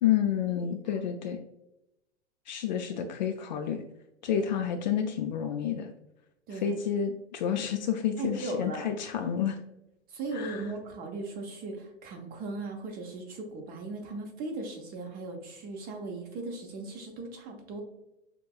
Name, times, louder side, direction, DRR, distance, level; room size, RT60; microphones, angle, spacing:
voice 1, 0.0-1.4 2.5-3.8 4.2-5.9 6.5-9.6 10.3-10.6, left 9 dB, 40° left, 6 dB, 0.4 m, -29 dB
voice 2, 6.5-6.8 8.2-8.9 10.1-17.8, right 3 dB, 25° right, 2 dB, 0.8 m, -38 dB
6.3 x 2.2 x 2.3 m, 0.88 s
figure-of-eight pair, 110°, 34 cm